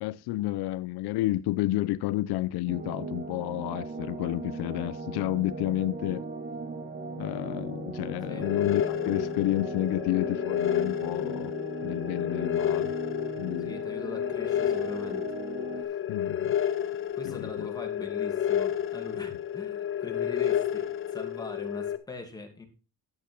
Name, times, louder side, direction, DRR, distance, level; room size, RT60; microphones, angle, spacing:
voice 1, 0.0-6.3 7.2-11.5 11.8-12.9 13.4-13.7 16.1-16.6 17.2-17.7, left 16 dB, 80° left, 0.6 m, -30 dB
sound 1, 2.7-15.8, right 3 dB, 25° right, 1.8 m, -38 dB
sound 2, 8.4-22.0, left 10 dB, 35° left, 0.8 m, -30 dB
voice 2, 13.6-15.3 15.7-16.0 17.1-22.7, left 3 dB, 10° left, 2.5 m, -42 dB
10.5 x 8.3 x 4.5 m
cardioid pair, 140°, 38 cm